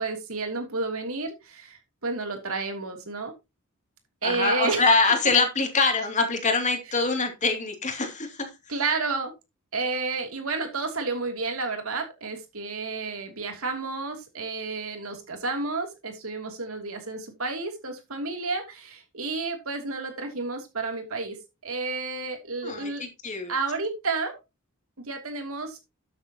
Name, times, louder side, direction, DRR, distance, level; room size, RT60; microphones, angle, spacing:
voice 1, 0.0-3.3 4.2-4.8 8.7-9.3 9.7-21.4 21.6-23.0 23.5-24.4 25.1-25.8, right 3 dB, 85° right, 4 dB, 3.0 m, -31 dB
voice 2, 4.2-8.5 22.6-23.5, left 4 dB, 35° left, 4 dB, 2.8 m, -24 dB
12.5 x 7.9 x 3.0 m, 0.24 s
head